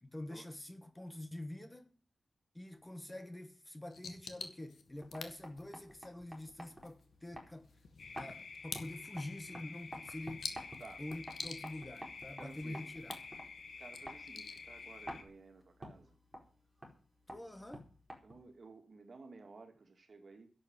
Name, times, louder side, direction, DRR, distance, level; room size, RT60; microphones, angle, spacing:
voice 1, 0.0-1.9 2.5-7.8 8.1-10.5 11.0-13.2 17.3-17.9, left 1 dB, 15° left, 1.3 m, -46 dB
sound 1, 3.9-15.0, left 5 dB, 80° left, 2.0 m, -50 dB
sound 2, 4.9-18.6, equal, 5° right, 4.5 m, -52 dB
sound 3, 8.0-15.2, left 4 dB, 60° left, 2.1 m, -50 dB
voice 2, 12.4-12.9 13.8-16.2 18.2-20.5, right 3 dB, 45° right, 2.5 m, -54 dB
11.0 x 8.2 x 9.6 m
wide cardioid pair, 145°, 0 cm